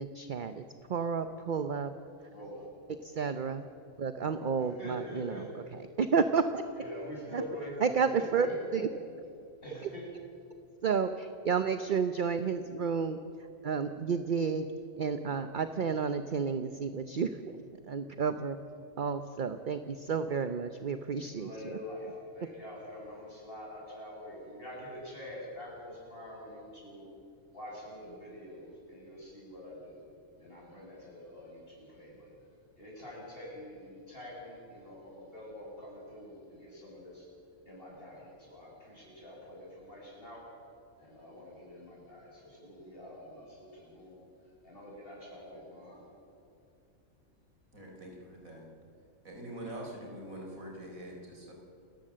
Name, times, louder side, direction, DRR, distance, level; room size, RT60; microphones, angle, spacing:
voice 1, 0.0-1.9 2.9-3.7 4.0-6.6 7.3-7.4 7.8-8.9 9.8-9.9 10.8-14.7 15.0-18.6 19.0-21.8 22.4-22.5, right 5 dB, 45° right, 9 dB, 0.8 m, -31 dB
voice 2, 2.3-2.7 3.2-3.3 4.6-5.4 6.8-8.8 9.6-10.0 21.2-22.1 22.3-27.1 27.5-30.0 30.4-32.3 32.8-37.3 37.7-40.4 41.0-44.1 44.6-46.0, left 1 dB, 40° left, -4 dB, 7.9 m, -45 dB
voice 3, 47.7-48.6 49.2-51.5, right 1 dB, 80° right, -1 dB, 4.8 m, -44 dB
28.5 x 14.5 x 7.5 m, 2.5 s
omnidirectional pair, 1.4 m